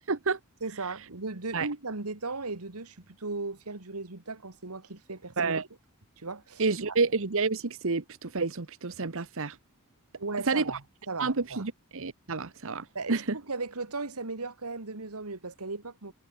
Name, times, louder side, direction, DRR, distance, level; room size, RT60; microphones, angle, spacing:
voice 1, 0.1-0.4 1.5-1.7 5.4-5.6 6.6-9.6 10.5-10.6 11.2-13.4, right 4 dB, 65° right, 1.2 m, -29 dB
voice 2, 0.6-5.5 6.2-6.6 6.9-7.0 10.2-10.8 11.1-11.6 12.9-16.1, right 3 dB, 85° right, 2.1 m, -37 dB
head